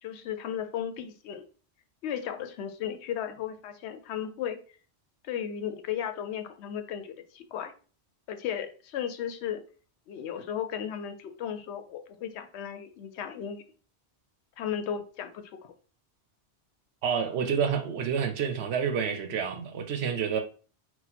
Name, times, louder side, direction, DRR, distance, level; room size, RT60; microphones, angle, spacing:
voice 1, 0.0-1.4 2.0-4.6 5.2-7.7 8.3-9.6 10.1-13.6 14.6-15.7, left 9 dB, 80° left, 0.8 m, -35 dB
voice 2, 17.0-20.4, right 7 dB, 75° right, 0.9 m, -28 dB
4.1 x 2.2 x 4.1 m
omnidirectional pair, 1.1 m